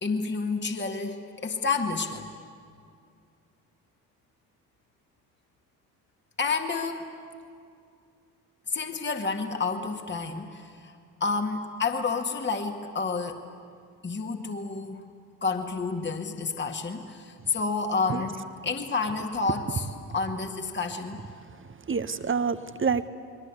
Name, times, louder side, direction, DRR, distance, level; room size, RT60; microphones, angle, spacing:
voice 1, 0.0-2.3 6.4-7.1 8.7-13.4 14.0-15.1 15.4-19.8 20.1-21.2, left 4 dB, 20° left, 4 dB, 2.1 m, -30 dB
voice 2, 21.4-23.1, right 5 dB, 25° right, 12 dB, 1.3 m, -28 dB
29.5 x 22.5 x 8.3 m, 2.3 s
figure-of-eight pair, 50°, 48 cm